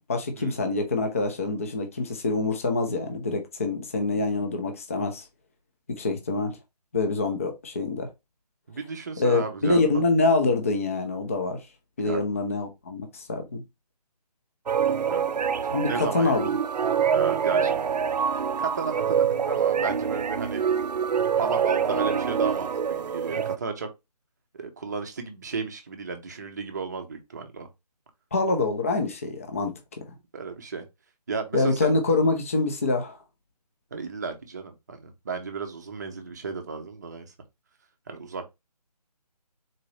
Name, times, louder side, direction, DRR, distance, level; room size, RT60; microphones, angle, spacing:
voice 1, 0.0-5.2 5.9-6.6 6.9-8.1 9.2-11.6 12.0-13.6 15.7-16.5 28.3-30.0 31.5-33.2, left 3 dB, 20° left, 0.5 m, -25 dB
voice 2, 8.7-10.0 12.0-12.2 15.1-15.3 15.8-16.4 17.1-17.8 18.6-20.6 21.4-23.9 24.5-27.7 30.3-30.8 31.3-31.9 33.9-37.3 38.1-38.5, right 4 dB, 25° right, 0.6 m, -33 dB
sound 1, 14.7-23.6, right 7 dB, 80° right, 0.4 m, -25 dB
3.9 x 2.6 x 3.1 m
figure-of-eight pair, 160°, 21 cm